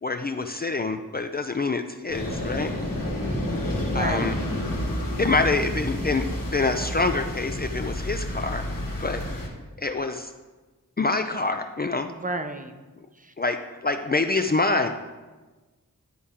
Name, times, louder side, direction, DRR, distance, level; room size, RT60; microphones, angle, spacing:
voice 1, 0.0-2.7 3.9-4.4 5.2-8.7 9.0-9.2 9.8-10.3 11.0-12.1 13.4-14.9, left 3 dB, 30° left, 7 dB, 0.4 m, -26 dB
sound 1, 2.1-9.5, left 1 dB, 85° left, 1.4 m, -29 dB
voice 2, 3.2-4.4 12.1-12.7 13.1-13.3, right 2 dB, 25° right, 6 dB, 0.6 m, -33 dB
10.5 x 4.2 x 3.6 m, 1.2 s
wide cardioid pair, 55°, 33 cm